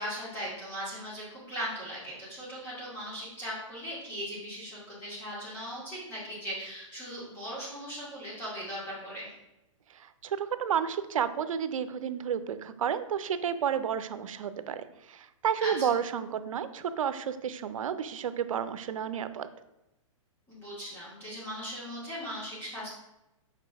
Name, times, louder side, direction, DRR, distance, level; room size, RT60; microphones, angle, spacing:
voice 1, 0.0-9.3 15.6-15.9 20.5-22.9, equal, 15° left, -8 dB, 2.2 m, -38 dB
voice 2, 9.9-19.5, right 8 dB, 75° right, 12 dB, 0.5 m, -31 dB
6.6 x 4.9 x 3.4 m, 0.93 s
hypercardioid pair, 150°, 17 cm